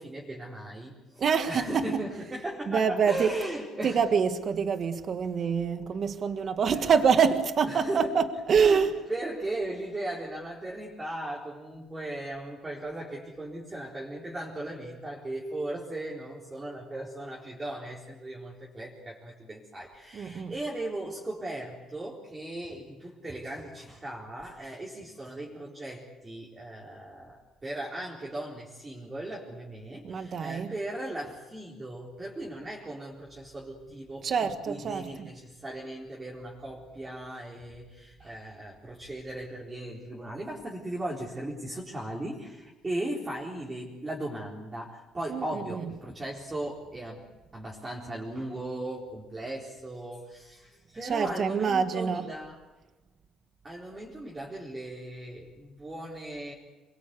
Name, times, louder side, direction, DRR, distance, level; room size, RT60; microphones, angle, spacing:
voice 1, 0.0-4.0 7.7-8.1 8.6-47.2 47.5-52.6 53.6-56.5, right 1 dB, 15° right, 4.1 m, -37 dB
voice 2, 1.2-2.1 2.7-3.3 3.8-8.9 20.1-20.5 30.0-30.7 34.2-35.3 45.3-45.9 51.0-52.2, right 6 dB, 40° right, 1.7 m, -26 dB
27.5 x 22.5 x 8.4 m
cardioid pair, 140°, 0 cm